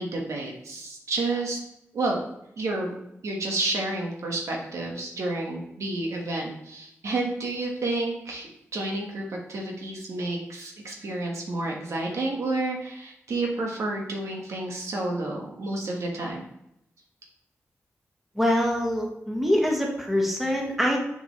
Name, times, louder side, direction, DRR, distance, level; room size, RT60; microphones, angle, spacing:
voice 1, 0.0-1.6 1.9-2.2 2.6-2.9 3.2-16.4, right 2 dB, 75° right, 0 dB, 1.4 m, -30 dB
voice 2, 18.4-21.0, equal, 5° right, -1 dB, 1.6 m, -24 dB
6.8 x 5.1 x 3.1 m, 0.82 s
cardioid pair, 65°, 5 cm